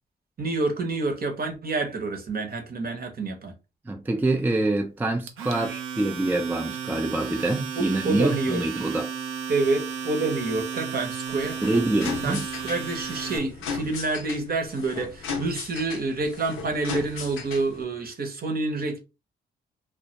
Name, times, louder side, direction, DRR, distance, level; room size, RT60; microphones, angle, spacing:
voice 1, 0.4-3.5 7.8-8.6 9.5-11.6 12.0-19.0, right 3 dB, 45° right, 0.8 m, -28 dB
voice 2, 3.9-9.1 11.6-12.4, right 2 dB, 10° right, 0.4 m, -25 dB
Domestic sounds home sounds, 5.3-13.4, right 7 dB, 75° right, 0.5 m, -34 dB
sound 1, 11.3-17.8, left 5 dB, 85° left, 0.6 m, -36 dB
2.2 x 2.1 x 2.7 m
supercardioid pair, 50°, 21 cm